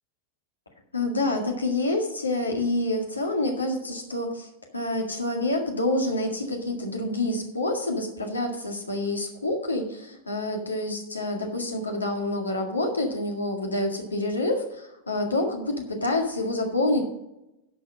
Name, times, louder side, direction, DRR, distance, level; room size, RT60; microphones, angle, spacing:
voice 1, 0.9-17.0, left 2 dB, 80° left, 2 dB, 1.8 m, -27 dB
10.5 x 5.8 x 6.3 m, 0.90 s
figure-of-eight pair, 90°, 0 cm